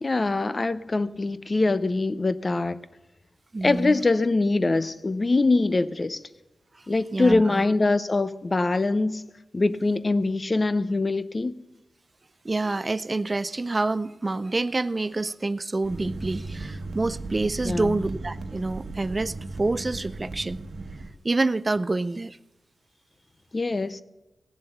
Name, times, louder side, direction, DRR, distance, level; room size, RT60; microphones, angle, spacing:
voice 1, 0.0-2.8 3.6-6.2 6.9-9.2 9.5-11.5 17.6-18.0 23.5-24.0, left 3 dB, 30° left, 0.6 m, -23 dB
voice 2, 3.5-4.0 7.1-7.6 12.4-20.6 21.2-22.4, right 2 dB, 25° right, 0.4 m, -27 dB
sound 1, 15.8-21.1, right 3 dB, 70° right, 1.2 m, -36 dB
17.5 x 7.5 x 7.9 m
wide cardioid pair, 120°, 0 cm